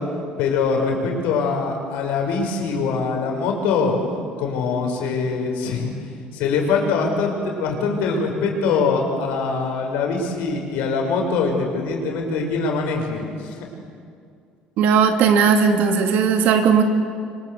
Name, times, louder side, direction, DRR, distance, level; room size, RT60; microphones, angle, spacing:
voice 1, 0.4-3.9 4.4-5.9 6.3-13.7, left 4 dB, 80° left, 2 dB, 6.0 m, -23 dB
voice 2, 14.8-16.8, right 6 dB, 70° right, 5 dB, 2.9 m, -17 dB
26.0 x 25.5 x 8.2 m, 2.3 s
cardioid pair, 130°, 3 cm